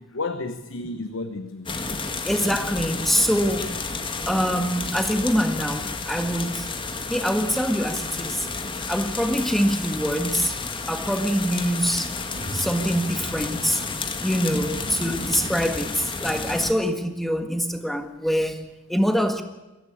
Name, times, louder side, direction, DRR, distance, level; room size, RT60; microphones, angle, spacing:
voice 1, 0.0-2.0, left 3 dB, 80° left, 1.1 m, -32 dB
sound 1, 1.7-16.7, left 4 dB, 25° left, 1.6 m, -31 dB
voice 2, 2.2-3.8 4.3-6.7 7.1-8.5 8.9-10.5 10.9-12.1 12.5-13.8 14.2-19.4, equal, ahead, 1.6 m, -24 dB
sound 2, 12.3-14.4, right 1 dB, 80° right, 6.5 m, -40 dB
22.5 x 15.5 x 8.6 m
head